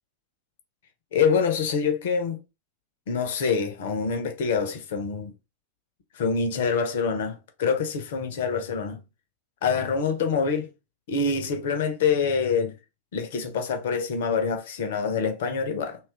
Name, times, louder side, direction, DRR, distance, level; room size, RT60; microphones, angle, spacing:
voice 1, 1.1-2.4 3.1-5.3 6.1-9.0 9.6-10.7 11.1-12.8 13.1-16.0, left 5 dB, 55° left, 0.7 m, -25 dB
2.8 x 2.4 x 3.3 m
figure-of-eight pair, 90°, 0 cm